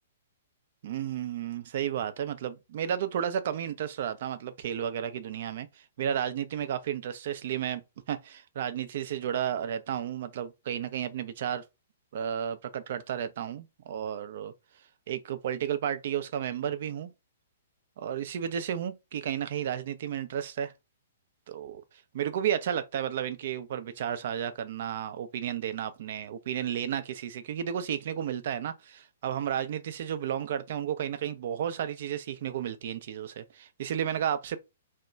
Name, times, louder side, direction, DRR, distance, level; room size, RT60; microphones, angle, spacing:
voice 1, 0.8-5.7 6.0-7.8 8.1-11.6 12.1-14.5 15.1-17.1 18.0-20.7 21.5-21.8 22.1-34.6, right 9 dB, 55° right, 0.4 m, -32 dB
2.2 x 2.2 x 3.8 m
hypercardioid pair, 120°, 0 cm